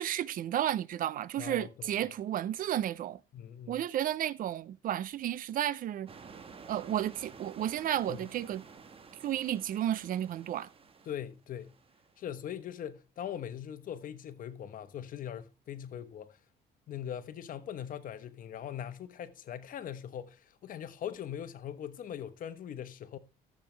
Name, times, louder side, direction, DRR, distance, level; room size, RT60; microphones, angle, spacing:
voice 1, 0.0-3.2 3.7-6.1 6.7-8.6 9.2-10.7, right 11 dB, 55° right, 0.5 m, -32 dB
voice 2, 1.4-2.1 3.3-3.8 8.1-8.3 11.1-11.8 12.2-16.4 16.9-23.2, left 9 dB, 55° left, 1.1 m, -41 dB
sound 1, 6.1-12.2, right 5 dB, 35° right, 1.3 m, -52 dB
14.0 x 7.5 x 3.3 m
cardioid pair, 110°, 17 cm